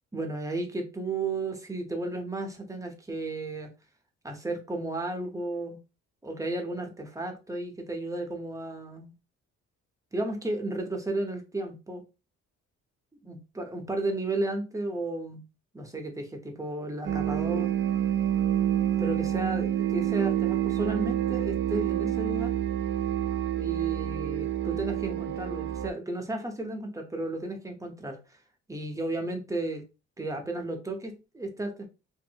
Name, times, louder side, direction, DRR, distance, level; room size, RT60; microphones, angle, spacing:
voice 1, 0.1-3.7 4.2-5.8 6.2-9.1 10.1-12.0 13.2-15.4 15.7-17.7 19.0-22.5 23.6-28.2 28.7-29.8 30.2-31.9, right 2 dB, 10° right, 0.7 m, -33 dB
sound 1, 17.0-25.9, right 11 dB, 40° right, 0.4 m, -28 dB
2.6 x 2.5 x 2.8 m
cardioid pair, 90°, 30 cm